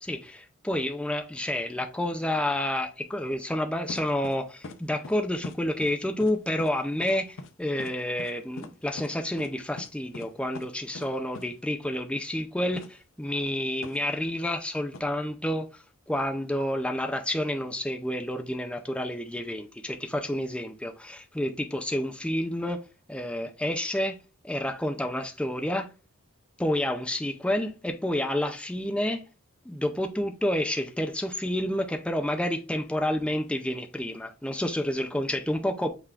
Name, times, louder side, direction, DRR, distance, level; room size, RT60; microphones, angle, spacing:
voice 1, 0.0-22.8 23.1-24.2 24.4-25.9 26.6-29.2 29.6-35.9, left 1 dB, 5° left, 0.4 m, -29 dB
sound 1, 3.9-4.4 4.6-4.8 5.0-5.2 5.4-5.9 6.2-6.3 6.6-6.7 7.0-7.1 7.4-7.5 7.8-7.9 8.2-8.3 8.6-8.7 9.0-9.1 9.4-9.5 9.8-9.9 10.1-10.3 10.5-10.7 10.9-11.1 11.3-11.5 12.8-12.9 13.8-14.0 14.9-15.0, left 2 dB, 65° left, 0.6 m, -40 dB
5.6 x 3.6 x 2.4 m
head